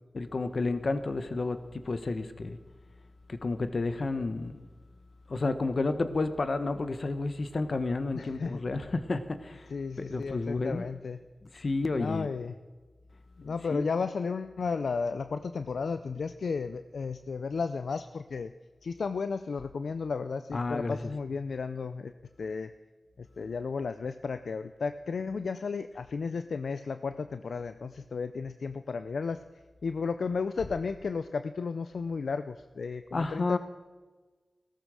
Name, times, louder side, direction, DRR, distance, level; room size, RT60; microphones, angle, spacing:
voice 1, 0.1-2.6 3.3-4.6 5.3-9.7 10.0-10.8 11.5-12.3 13.4-13.8 20.5-21.1 33.1-33.6, left 3 dB, 60° left, 10 dB, 1.2 m, -31 dB
voice 2, 8.1-8.6 9.7-11.2 11.9-12.6 13.4-18.5 18.8-22.1 22.4-22.7 23.2-29.4 29.8-33.6, left 5 dB, 80° left, 11 dB, 0.5 m, -33 dB
16.0 x 13.5 x 6.3 m, 1.3 s
cardioid pair, 45°, 0 cm